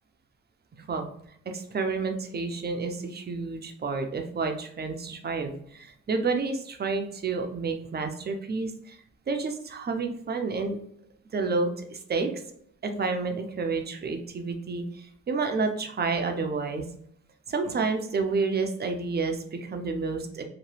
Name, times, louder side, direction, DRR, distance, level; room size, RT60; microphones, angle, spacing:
voice 1, 0.7-1.1 1.5-9.0 9.3-10.8 11.3-12.3 12.8-16.8 17.5-20.4, right 4 dB, 30° right, 5 dB, 0.6 m, -30 dB
2.9 x 2.1 x 3.1 m, 0.66 s
hypercardioid pair, 45°, 33 cm